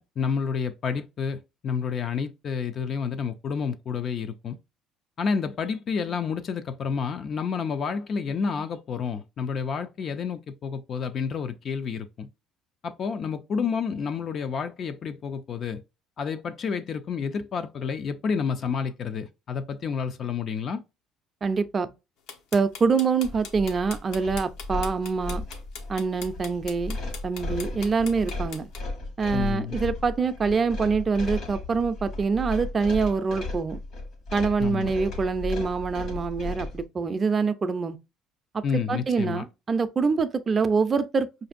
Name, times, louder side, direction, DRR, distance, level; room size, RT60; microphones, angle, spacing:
voice 1, 0.0-4.6 5.2-12.3 12.8-15.8 16.2-20.8 29.3-29.8 34.6-34.9 38.6-39.4, left 6 dB, 45° left, 0.3 m, -30 dB
voice 2, 21.4-21.9 22.5-25.4 25.9-27.0 27.2-28.7 29.2-33.8 34.3-38.0 38.5-38.6 38.9-41.5, right 5 dB, 30° right, 0.4 m, -25 dB
sound 1, 22.3-28.8, left 6 dB, 80° left, 0.7 m, -40 dB
sound 2, 23.2-36.8, left 2 dB, 60° left, 1.2 m, -35 dB
4.9 x 2.6 x 2.4 m
cardioid pair, 115°, 0 cm